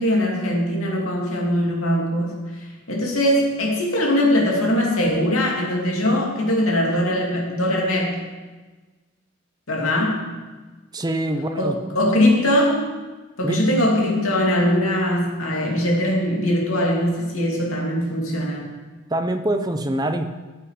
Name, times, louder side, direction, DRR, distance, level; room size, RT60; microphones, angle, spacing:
voice 1, 0.0-8.2 9.7-10.3 11.6-12.8 13.4-18.7, left 1 dB, 75° left, -1 dB, 2.6 m, -21 dB
voice 2, 10.9-11.8 13.4-13.7 19.1-20.3, right 1 dB, 20° right, 7 dB, 0.7 m, -24 dB
13.5 x 8.6 x 4.9 m, 1.3 s
head